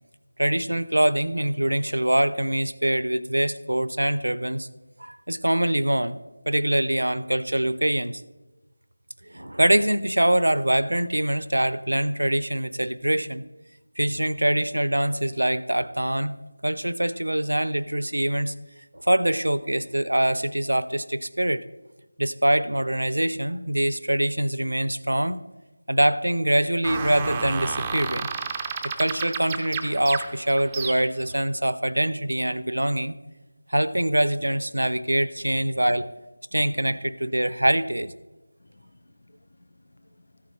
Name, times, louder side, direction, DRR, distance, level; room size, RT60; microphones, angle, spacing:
voice 1, 0.4-4.7 5.0-6.2 6.5-8.2 9.3-13.4 14.0-16.4 16.6-18.5 19.0-21.6 22.2-25.4 25.9-28.3 29.0-33.1 33.7-36.1 36.5-38.1, right 1 dB, 85° right, 16 dB, 0.6 m, -24 dB
sound 1, 26.8-31.3, right 5 dB, 15° right, 0.6 m, -31 dB
voice 2, 35.4-35.9 36.6-36.9 38.6-39.6 39.9-40.1, left 2 dB, 55° left, 8 dB, 0.7 m, -50 dB
14.0 x 9.5 x 3.2 m, 1.1 s
figure-of-eight pair, 170°, 0 cm